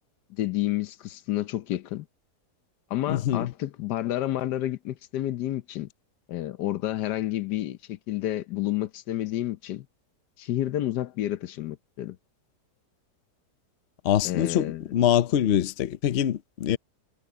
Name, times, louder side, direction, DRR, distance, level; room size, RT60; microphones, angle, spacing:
voice 1, 0.3-2.0 2.9-5.9 6.3-9.9 10.4-12.2 14.2-14.9, left 14 dB, 85° left, 1.4 m, -30 dB
voice 2, 3.1-3.5 14.0-16.8, left 10 dB, 55° left, 0.7 m, -24 dB
omnidirectional pair, 1.8 m